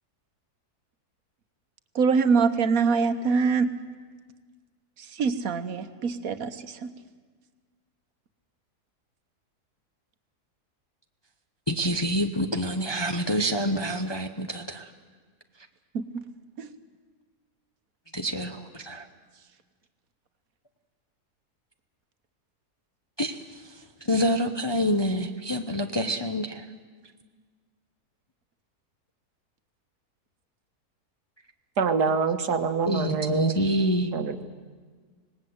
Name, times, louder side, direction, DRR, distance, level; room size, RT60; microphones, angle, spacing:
voice 1, 1.9-3.7 5.0-6.9 15.9-16.2 16.6-16.7, right 5 dB, 65° right, 10 dB, 1.5 m, -24 dB
voice 2, 11.7-14.9 18.1-19.0 23.2-23.4 24.1-26.6 32.9-34.1, equal, 20° left, 6 dB, 0.7 m, -27 dB
voice 3, 31.8-33.5 34.1-34.5, right 5 dB, 80° right, 9 dB, 1.7 m, -26 dB
25.5 x 19.0 x 7.9 m, 1.5 s
omnidirectional pair, 1.7 m